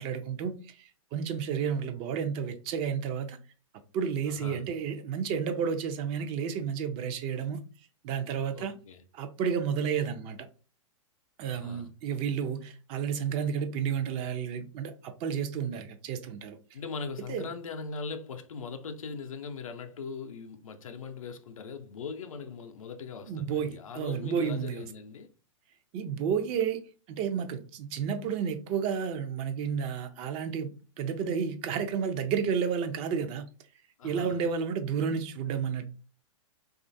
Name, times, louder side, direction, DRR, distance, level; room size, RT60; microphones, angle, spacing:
voice 1, 0.0-3.4 3.9-7.6 8.0-8.7 9.1-10.4 11.4-16.6 17.3-17.4 23.3-24.9 25.9-26.8 27.1-33.5 34.0-35.9, right 7 dB, 35° right, 0.4 m, -31 dB
voice 2, 4.3-4.6 8.5-9.0 11.5-11.9 16.7-25.3 34.0-34.4, left 5 dB, 80° left, 0.5 m, -40 dB
3.0 x 2.4 x 2.6 m
hypercardioid pair, 120°, 17 cm